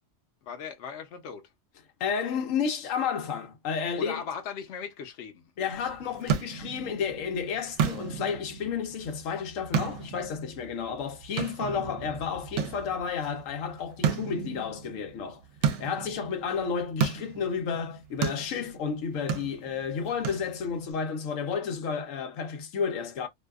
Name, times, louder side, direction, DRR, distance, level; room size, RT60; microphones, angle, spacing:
voice 1, 0.4-1.4 4.0-5.7, left 6 dB, 65° left, 0.9 m, -38 dB
voice 2, 2.0-4.2 5.6-15.4 15.8-23.3, left 6 dB, 90° left, 1.0 m, -31 dB
sound 1, 5.7-20.9, right 7 dB, 70° right, 0.9 m, -34 dB
2.6 x 2.3 x 2.2 m
omnidirectional pair, 1.3 m